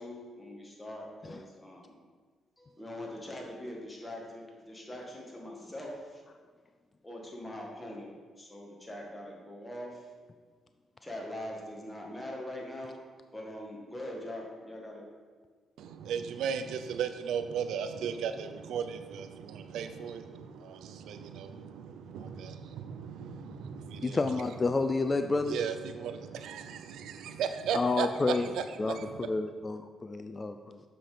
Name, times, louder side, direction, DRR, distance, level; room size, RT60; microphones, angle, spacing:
voice 1, 0.0-2.0 2.6-6.2 7.0-10.0 11.0-13.0 13.3-15.0, left 1 dB, 15° left, -1 dB, 2.0 m, -42 dB
voice 2, 15.8-24.4 25.3-29.3, right 7 dB, 85° right, 9 dB, 0.6 m, -36 dB
voice 3, 24.0-25.6 27.7-28.5 28.8-30.8, left 3 dB, 30° left, 8 dB, 0.4 m, -30 dB
7.8 x 5.9 x 5.1 m, 1.5 s
cardioid pair, 90°, 0 cm